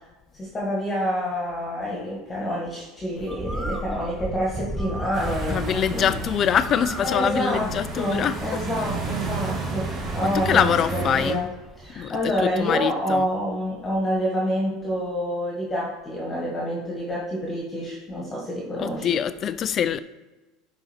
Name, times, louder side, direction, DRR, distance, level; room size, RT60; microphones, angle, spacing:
voice 1, 0.3-6.1 7.0-11.5 11.8-19.2, equal, 15° left, 1.6 m, -28 dB
Bird, 3.2-12.7, right 1 dB, 5° right, 0.6 m, -37 dB
sound 1, 5.1-11.3, right 3 dB, 25° right, 1.8 m, -31 dB
voice 2, 5.5-8.6 10.2-11.4 12.0-12.1 12.4-13.3 18.8-20.0, left 9 dB, 35° left, 0.4 m, -24 dB
11.0 x 4.0 x 4.4 m
supercardioid pair, 145°, 0 cm